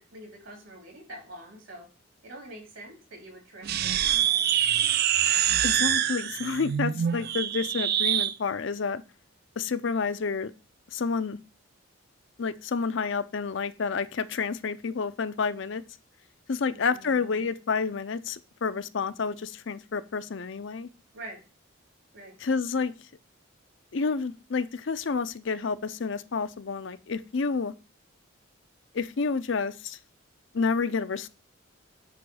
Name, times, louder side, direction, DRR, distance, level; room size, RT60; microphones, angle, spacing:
voice 1, 0.0-1.9 2.2-4.5 16.6-17.4 21.1-21.4 22.1-22.4, right 1 dB, 70° right, 3.1 m, -46 dB
sound 1, 3.6-8.3, right 10 dB, 50° right, 0.4 m, -25 dB
voice 2, 5.6-9.0 9.6-10.5 10.9-11.4 12.4-15.8 16.5-20.9 22.4-22.9 23.9-27.7 28.9-30.0 30.5-31.3, left 5 dB, 60° left, 0.5 m, -29 dB
7.8 x 3.1 x 6.2 m
head